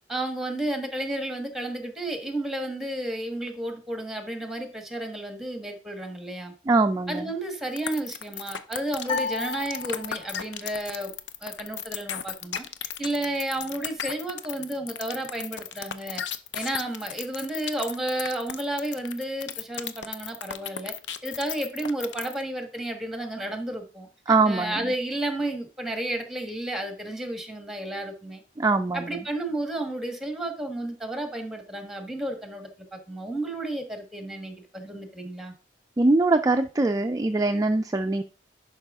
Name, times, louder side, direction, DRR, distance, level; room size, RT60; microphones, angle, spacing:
voice 1, 0.1-6.5 7.1-11.1 11.4-12.6 13.0-16.2 16.5-20.9 21.2-28.4 28.9-35.5, right 1 dB, ahead, 4 dB, 1.4 m, -32 dB
voice 2, 6.7-7.3 24.3-24.9 28.6-29.2 36.0-38.2, right 3 dB, 20° right, 7 dB, 0.3 m, -22 dB
sound 1, 7.8-22.4, left 9 dB, 85° left, 0.7 m, -35 dB
sound 2, 9.0-10.5, left 4 dB, 30° left, 1.2 m, -32 dB
11.0 x 5.4 x 3.5 m, 0.38 s
head